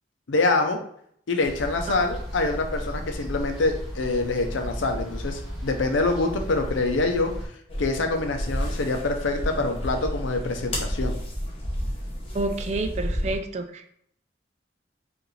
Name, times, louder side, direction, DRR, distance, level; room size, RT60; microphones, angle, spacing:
voice 1, 0.3-0.8 1.3-7.3 7.8-11.1, left 3 dB, 85° left, 5 dB, 0.6 m, -25 dB
sound 1, 1.4-7.5, equal, ahead, 1.2 m, -35 dB
sound 2, 7.7-13.4, equal, 30° left, 0.9 m, -31 dB
voice 2, 12.3-13.9, right 2 dB, 35° right, 8 dB, 0.3 m, -29 dB
4.7 x 2.5 x 3.2 m, 0.66 s
head